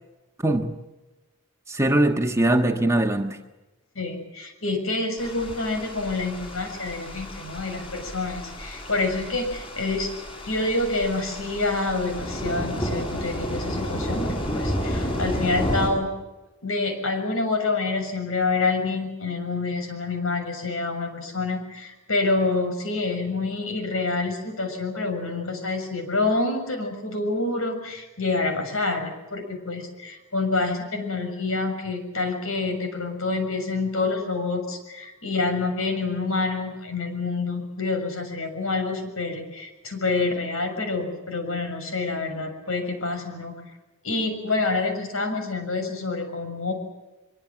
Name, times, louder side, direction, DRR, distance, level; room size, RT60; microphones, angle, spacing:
voice 1, 0.4-0.7 1.7-3.4, right 1 dB, 15° right, 4 dB, 1.4 m, -21 dB
voice 2, 4.0-10.1 10.5-16.1 16.6-43.6 44.0-46.7, left 3 dB, 70° left, 6 dB, 6.8 m, -27 dB
sound 1, 5.2-15.9, equal, 25° left, 7.1 m, -31 dB
24.5 x 23.5 x 7.5 m, 1.0 s
head